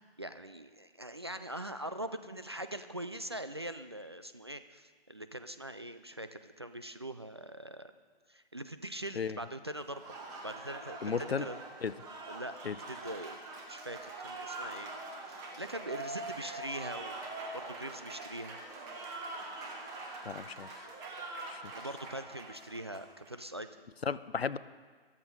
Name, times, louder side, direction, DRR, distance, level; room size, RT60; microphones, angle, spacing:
voice 1, 0.2-7.9 8.3-10.0 10.4-11.6 12.3-12.6 12.9-13.4 13.7-14.9 15.3-17.2 17.5-18.6 21.7-23.9, right 1 dB, 25° right, 10 dB, 0.3 m, -42 dB
Applause, 9.8-23.4, right 2 dB, 10° right, 1.1 m, -44 dB
voice 2, 11.0-11.5 11.8-11.9 12.6-12.8 20.2-20.9 21.5-21.7 24.1-24.6, left 6 dB, 75° left, 16 dB, 0.7 m, -34 dB
14.0 x 13.0 x 5.3 m, 1.5 s
figure-of-eight pair, 140°, 31 cm